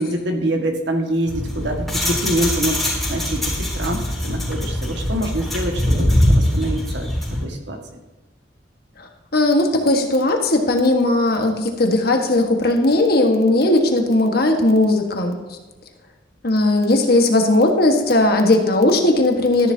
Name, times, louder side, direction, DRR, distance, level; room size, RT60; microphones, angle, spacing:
voice 1, 0.0-2.8 3.1-7.1 7.4-7.8, right 1 dB, 75° right, 3 dB, 1.8 m, -25 dB
sound 1, 1.3-7.4, left 1 dB, ahead, 3.7 m, -22 dB
voice 2, 9.3-15.4 16.4-19.7, left 2 dB, 55° left, 3 dB, 1.5 m, -17 dB
13.0 x 10.5 x 2.8 m, 1.2 s
head